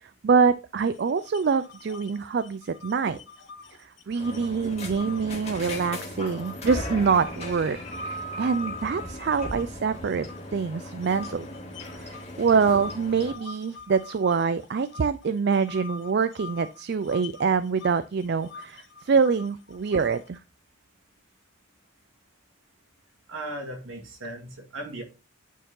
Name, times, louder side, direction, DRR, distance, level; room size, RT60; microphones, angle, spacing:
voice 1, 0.0-3.2 4.1-7.8 8.0-10.3 10.5-11.5 11.9-20.4, right 5 dB, 50° right, 0.4 m, -25 dB
sound 1, 0.8-6.8 7.2-10.6 11.0-20.4, left 5 dB, 55° left, 1.2 m, -45 dB
sound 2, 4.2-13.3, left 1 dB, 30° left, 1.9 m, -37 dB
voice 2, 23.3-25.0, right 1 dB, 70° right, 2.4 m, -37 dB
9.1 x 4.4 x 3.8 m
head